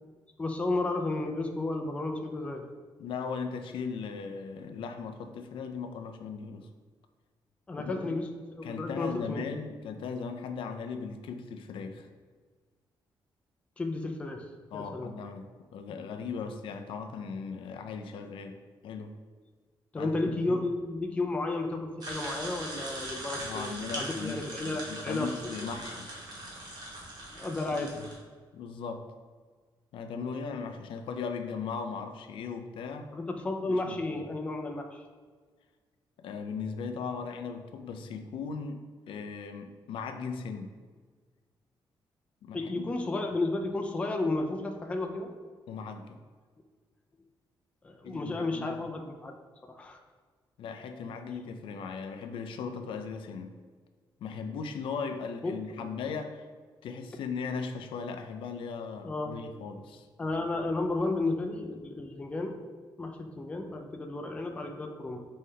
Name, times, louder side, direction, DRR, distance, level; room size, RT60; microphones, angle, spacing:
voice 1, 0.4-2.6 7.7-8.2 8.6-9.5 13.8-14.4 14.7-15.1 19.9-23.7 24.0-25.3 25.6-25.7 27.3-27.9 33.1-35.0 42.5-45.3 47.8-49.4 49.7-50.0 55.4-55.5 59.0-59.3 60.2-62.6 63.0-65.2, left 2 dB, 15° left, 3 dB, 0.3 m, -32 dB
voice 2, 3.0-6.7 7.8-8.2 8.6-12.1 14.7-19.1 20.0-20.1 20.5-20.6 23.4-26.1 27.7-28.1 28.5-29.0 29.9-33.1 33.7-34.2 36.2-40.8 42.4-42.9 45.7-46.2 48.0-48.8 50.6-53.6 54.2-56.5 56.8-60.1, left 5 dB, 80° left, 6 dB, 0.4 m, -38 dB
sound 1, 22.0-28.2, right 1 dB, 50° right, 1.1 m, -40 dB
5.4 x 3.2 x 2.7 m, 1.5 s
wide cardioid pair, 175°, 9 cm